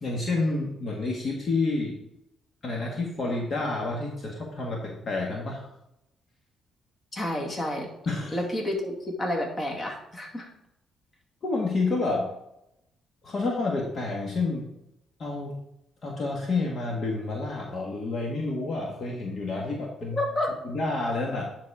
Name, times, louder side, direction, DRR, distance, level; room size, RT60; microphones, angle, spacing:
voice 1, 0.0-1.9 2.6-5.7 8.1-8.4 11.4-12.3 13.2-14.7 15.2-15.6 16.0-20.2 20.6-21.4, left 3 dB, 50° left, -1 dB, 1.7 m, -29 dB
voice 2, 7.1-7.9 8.3-10.5 20.1-20.5, left 1 dB, 30° left, 0 dB, 2.1 m, -30 dB
9.6 x 4.2 x 4.9 m, 0.84 s
cardioid pair, 90°, 0 cm